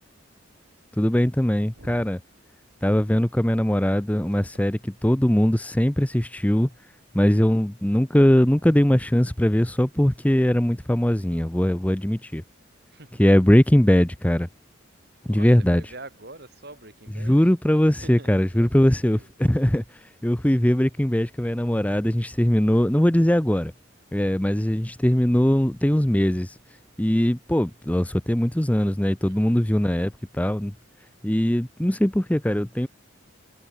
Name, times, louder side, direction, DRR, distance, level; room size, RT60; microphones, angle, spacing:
voice 1, 1.0-2.2 2.8-6.7 7.1-12.4 13.2-14.5 15.3-15.9 17.2-23.7 24.1-26.6 27.0-30.7 31.2-32.9, equal, 5° left, 0.6 m, -21 dB
voice 2, 1.8-2.1 12.9-13.2 15.2-15.5 15.7-17.4 18.0-19.3 29.3-29.6, right 2 dB, 50° right, 5.0 m, -45 dB
head